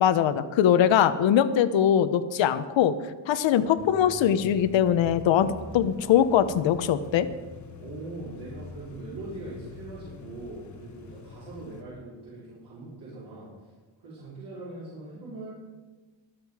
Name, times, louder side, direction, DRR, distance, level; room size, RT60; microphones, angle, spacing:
voice 1, 0.0-3.0 3.3-7.3, left 9 dB, 75° left, 13 dB, 0.9 m, -22 dB
sound 1, 3.8-11.8, left 5 dB, 40° left, 1.1 m, -45 dB
voice 2, 7.8-13.5 14.0-15.5, right 2 dB, 55° right, -10 dB, 4.6 m, -41 dB
23.0 x 7.8 x 4.8 m, 1.3 s
wide cardioid pair, 180°, 46 cm